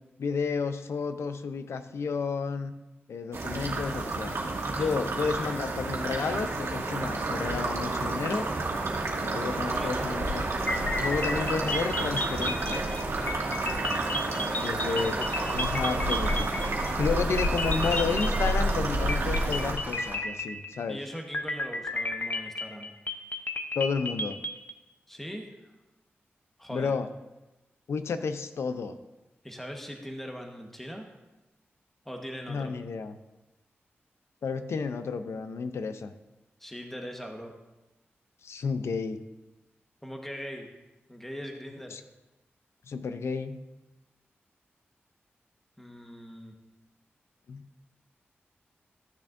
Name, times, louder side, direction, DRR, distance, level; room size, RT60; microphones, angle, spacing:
voice 1, 0.2-2.7 3.1-4.3 4.8-8.5 9.3-10.5 11.0-12.9 14.6-16.5 17.0-21.0 23.7-24.4 26.7-27.1 27.9-28.9 32.5-33.2 34.4-36.1 38.4-39.2 41.9-42.0 42.9-43.6 47.5-47.6, left 5 dB, 80° left, 10 dB, 0.6 m, -31 dB
sound 1, 3.3-19.7, right 2 dB, 80° right, 1.7 m, -30 dB
voice 2, 9.6-10.0 14.3-14.6 20.9-22.9 25.1-25.5 26.6-27.0 29.4-31.1 32.0-32.7 36.6-37.5 40.0-40.7 41.1-42.0 45.8-46.5, equal, 5° left, 2 dB, 1.3 m, -40 dB
sound 2, 10.7-17.1 17.4-18.8 19.1-20.9 21.3-24.7, left 2 dB, 45° left, 0.9 m, -33 dB
sound 3, 15.0-20.2, right 2 dB, 50° right, 1.7 m, -41 dB
14.0 x 7.0 x 2.6 m, 1.0 s
cardioid pair, 55°, 4 cm